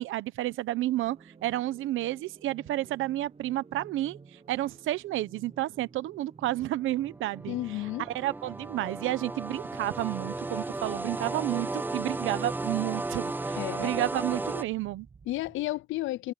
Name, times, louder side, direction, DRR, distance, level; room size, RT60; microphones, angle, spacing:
voice 1, 0.0-7.6 8.1-15.1, right 15 dB, 85° right, 0.9 m, -31 dB
sound 1, 0.7-15.7, right 5 dB, 30° right, 1.3 m, -53 dB
sound 2, 6.7-14.6, right 2 dB, 10° right, 0.4 m, -35 dB
voice 2, 7.5-8.1 13.6-14.0 15.3-16.3, left 17 dB, 80° left, 0.5 m, -32 dB
cardioid pair, 90°, 20 cm